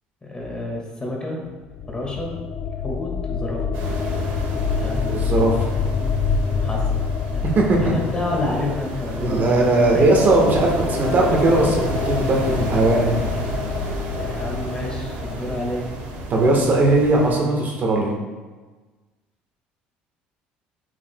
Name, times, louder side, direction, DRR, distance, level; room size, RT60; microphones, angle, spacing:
voice 1, 0.2-1.4 1.9-2.3 2.8-3.7 4.8-5.0 6.6-7.0 7.3-9.6 9.9-10.1 14.1-15.9, left 2 dB, 20° left, -1 dB, 1.9 m, -29 dB
sound 1, 1.5-16.3, left 6 dB, 50° left, 0.3 m, -27 dB
sound 2, 3.7-17.3, right 2 dB, 70° right, 1.1 m, -31 dB
voice 2, 5.1-5.7 7.5-7.9 9.2-13.2 16.3-18.1, right 2 dB, 45° right, -1 dB, 1.4 m, -18 dB
8.5 x 5.0 x 2.3 m, 1.3 s
hypercardioid pair, 75°, 4 cm